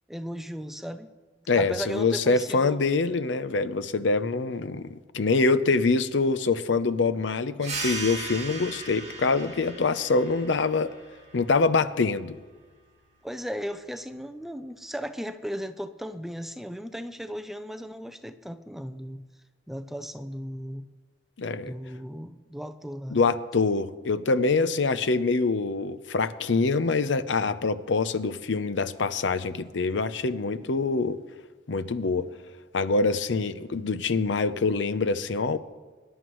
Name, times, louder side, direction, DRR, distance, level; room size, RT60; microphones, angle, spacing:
voice 1, 0.1-1.1 1.6-2.9 13.2-19.2 19.7-20.9 21.6-23.2, equal, ahead, 9 dB, 0.5 m, -36 dB
voice 2, 1.5-10.9 11.3-12.4 21.4-21.7 23.1-31.2 31.7-32.3 32.7-35.6, left 3 dB, 85° left, 12 dB, 0.6 m, -25 dB
sound 1, 7.6-12.8, right 3 dB, 35° right, 2.3 m, -38 dB
24.5 x 11.0 x 3.1 m, 1.4 s
head